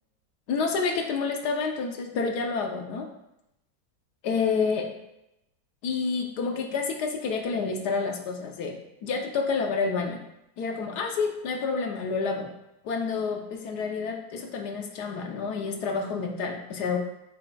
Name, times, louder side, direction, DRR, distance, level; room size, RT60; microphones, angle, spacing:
voice 1, 0.5-3.1 4.2-4.9 5.8-10.2 10.6-12.5 12.8-17.0, left 4 dB, 70° left, 3 dB, 1.3 m, -29 dB
7.6 x 5.8 x 2.3 m, 0.85 s
omnidirectional pair, 2.0 m